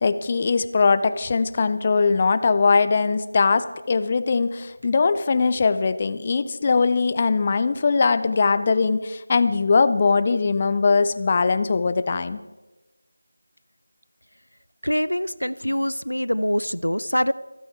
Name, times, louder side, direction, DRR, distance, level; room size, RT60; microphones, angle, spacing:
voice 1, 0.0-12.4, left 4 dB, 25° left, 13 dB, 0.5 m, -21 dB
voice 2, 14.8-17.3, equal, 85° left, 18 dB, 0.5 m, -24 dB
26.5 x 9.2 x 4.5 m, 1.1 s
figure-of-eight pair, 165°, 0 cm